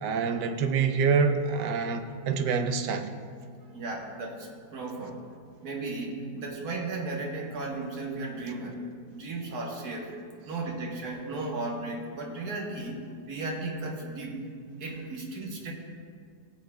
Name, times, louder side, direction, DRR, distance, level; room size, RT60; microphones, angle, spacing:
voice 1, 0.0-3.1, right 5 dB, 80° right, 6 dB, 1.2 m, -26 dB
voice 2, 3.7-5.2 5.6-8.8 9.1-10.1 10.5-14.4 14.8-15.7, right 2 dB, 65° right, 0 dB, 1.6 m, -35 dB
17.5 x 7.3 x 2.3 m, 2.1 s
omnidirectional pair, 1.8 m